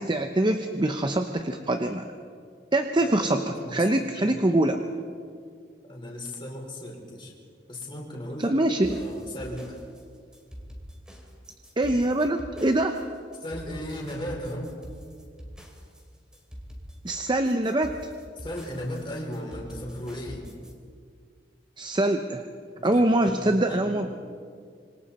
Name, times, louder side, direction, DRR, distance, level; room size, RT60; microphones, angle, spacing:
voice 1, 0.0-2.1 2.7-4.8 8.4-9.0 11.8-13.0 17.0-17.9 21.8-22.5 22.8-24.1, right 1 dB, 25° right, 6 dB, 0.8 m, -24 dB
voice 2, 3.0-3.9 4.2-4.4 5.9-7.3 7.7-8.6 8.9-9.8 13.4-14.7 18.4-20.4 22.7-24.0, equal, 30° left, -1 dB, 4.5 m, -36 dB
sound 1, 8.8-20.7, equal, 5° right, 3.2 m, -44 dB
26.5 x 24.5 x 4.3 m, 2.2 s
head